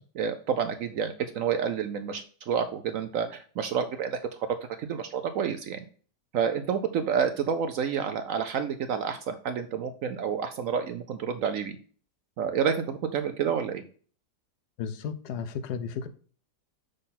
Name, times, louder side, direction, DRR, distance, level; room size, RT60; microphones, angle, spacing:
voice 1, 0.1-4.5 4.8-5.8 6.3-11.8 12.4-13.8, right 7 dB, 70° right, 9 dB, 0.8 m, -29 dB
voice 2, 14.8-16.1, left 6 dB, 75° left, 11 dB, 1.2 m, -34 dB
6.5 x 3.9 x 4.1 m, 0.43 s
omnidirectional pair, 1.8 m